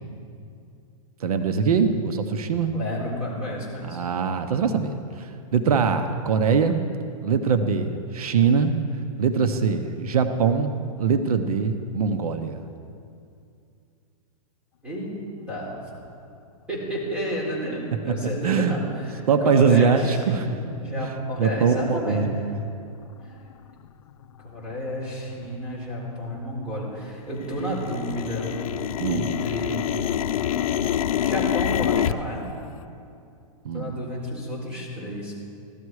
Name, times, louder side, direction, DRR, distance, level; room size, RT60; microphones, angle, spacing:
voice 1, 1.2-2.7 3.8-6.8 7.2-8.7 9.2-12.6 18.1-18.2 18.4-18.8 19.3-20.5 21.0-21.1 21.4-22.6 29.0-29.3 33.6-33.9, right 6 dB, 85° right, 8 dB, 1.0 m, -22 dB
voice 2, 2.7-4.0 14.8-15.1 15.5-15.8 16.7-22.3 24.4-28.5 29.1-29.9 31.2-32.4 33.7-35.4, equal, 5° right, -6 dB, 3.9 m, -31 dB
sound 1, 21.3-21.4 22.0-22.1 22.7-23.0 23.5-23.6 23.8-24.4 24.7-27.0 27.3-32.1, left 10 dB, 75° left, 0.5 m, -27 dB
16.0 x 13.0 x 4.8 m, 2.5 s
hypercardioid pair, 160°, 18 cm